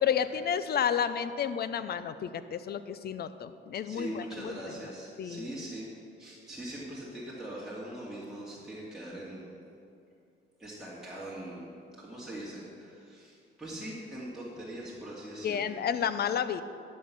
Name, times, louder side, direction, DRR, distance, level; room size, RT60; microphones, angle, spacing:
voice 1, 0.0-4.6 5.2-5.5 15.4-16.6, left 8 dB, 55° left, 12 dB, 0.6 m, -31 dB
voice 2, 3.9-5.9 6.2-9.6 10.6-15.7, right 1 dB, ahead, -8 dB, 2.4 m, -41 dB
11.5 x 6.4 x 5.9 m, 2.6 s
cardioid pair, 90°, 20 cm